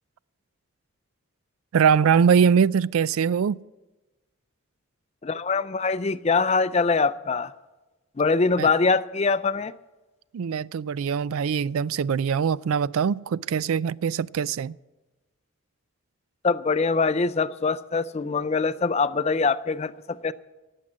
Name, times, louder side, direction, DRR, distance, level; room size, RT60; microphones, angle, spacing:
voice 1, 1.7-3.6 8.6-8.7 10.3-14.8, right 7 dB, 80° right, 0.4 m, -22 dB
voice 2, 5.2-7.5 8.2-9.7 16.4-20.3, left 4 dB, 30° left, 0.4 m, -23 dB
17.5 x 7.8 x 7.4 m
head